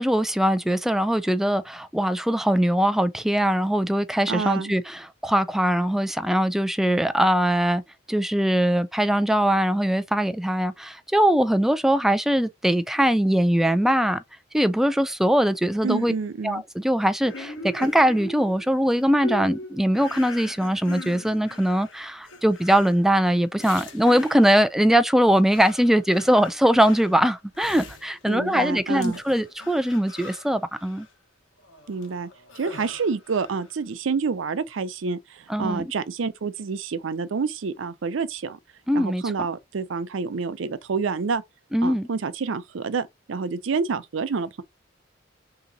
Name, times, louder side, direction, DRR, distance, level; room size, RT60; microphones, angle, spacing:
voice 1, 0.0-7.8 8.1-14.2 14.5-16.1 16.4-31.1 35.5-35.8 38.9-39.2 41.7-42.1, equal, ahead, 0.3 m, -21 dB
voice 2, 4.3-4.7 15.8-16.6 28.3-29.2 31.9-32.3 32.6-38.6 38.9-41.4 41.8-44.6, right 5 dB, 80° right, 0.5 m, -28 dB
sound 1, 17.2-24.7 25.2-28.7 29.0-31.1 31.6-33.7, left 2 dB, 80° left, 1.1 m, -41 dB
3.6 x 2.8 x 3.9 m
head